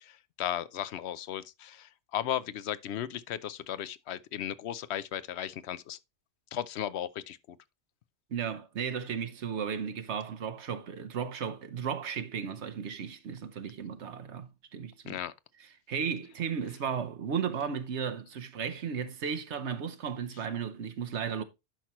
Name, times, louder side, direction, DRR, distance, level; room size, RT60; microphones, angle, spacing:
voice 1, 0.0-6.0 6.5-7.6 15.1-15.3, left 11 dB, 75° left, 0.9 m, -36 dB
voice 2, 8.3-15.2 15.6-21.4, right 7 dB, 80° right, 1.2 m, -35 dB
10.5 x 5.8 x 3.0 m
omnidirectional pair, 1.1 m